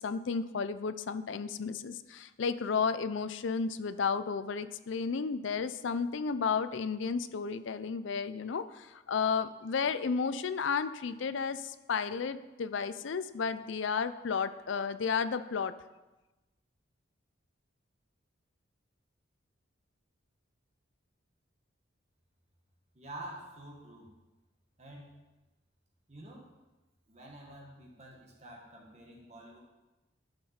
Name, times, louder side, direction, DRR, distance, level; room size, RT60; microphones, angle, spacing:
voice 1, 0.0-15.7, left 5 dB, 70° left, 12 dB, 0.5 m, -33 dB
voice 2, 22.9-24.1 24.8-25.2 26.1-26.5 27.1-29.6, right 1 dB, 35° right, -1 dB, 1.7 m, -48 dB
12.5 x 5.6 x 4.4 m, 1.1 s
head